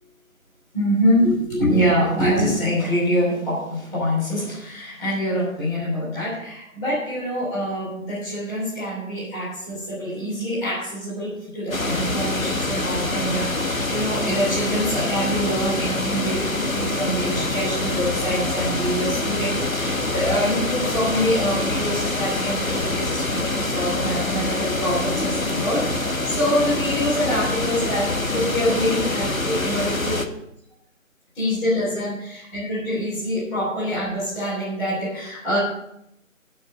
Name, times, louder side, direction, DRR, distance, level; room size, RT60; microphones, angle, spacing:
voice 1, 0.7-30.2 31.3-35.6, equal, 5° left, -11 dB, 3.4 m, -25 dB
sound 1, 11.7-30.3, left 2 dB, 85° left, 1.7 m, -25 dB
17.0 x 6.7 x 5.4 m, 0.78 s
figure-of-eight pair, 160°, 40 cm